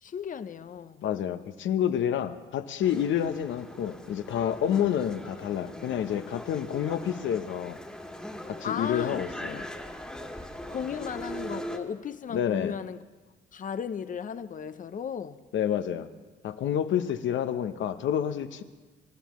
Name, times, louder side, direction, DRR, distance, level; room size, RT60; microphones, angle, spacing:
voice 1, 0.0-1.0 8.6-9.2 10.7-13.0 13.5-15.4, left 7 dB, 40° left, 0.7 m, -35 dB
voice 2, 1.0-7.8 8.5-9.7 12.3-12.7 15.5-16.1 16.4-18.6, left 9 dB, 75° left, 0.9 m, -29 dB
sound 1, 2.8-11.8, equal, 5° left, 1.8 m, -41 dB
27.5 x 13.0 x 3.1 m
cardioid pair, 90°, 20 cm